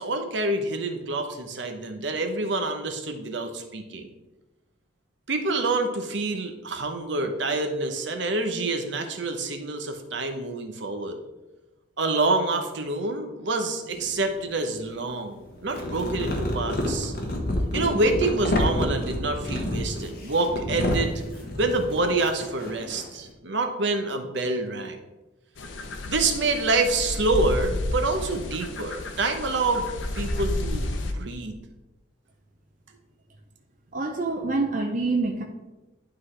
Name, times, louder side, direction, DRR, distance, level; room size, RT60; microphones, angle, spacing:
voice 1, 0.0-4.1 5.3-11.2 12.0-17.1 17.7-21.2 21.6-25.0 26.1-29.9 30.1-31.6, right 2 dB, 70° right, 5 dB, 0.8 m, -27 dB
sound 1, 13.9-14.8 15.5-23.3, left 1 dB, 50° left, 1.1 m, -29 dB
sound 2, 25.6-31.1, left 1 dB, 75° left, 0.7 m, -31 dB
voice 2, 33.9-35.4, right 3 dB, 40° right, 2 dB, 0.6 m, -26 dB
11.5 x 3.9 x 3.3 m, 1.1 s
head